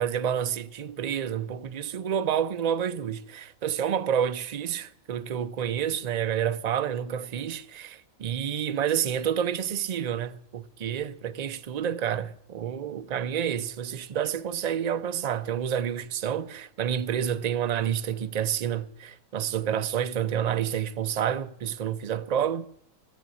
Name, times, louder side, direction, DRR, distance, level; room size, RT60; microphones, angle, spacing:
voice 1, 0.0-22.7, right 9 dB, 55° right, 0.4 m, -29 dB
14.5 x 7.6 x 8.4 m
omnidirectional pair, 1.4 m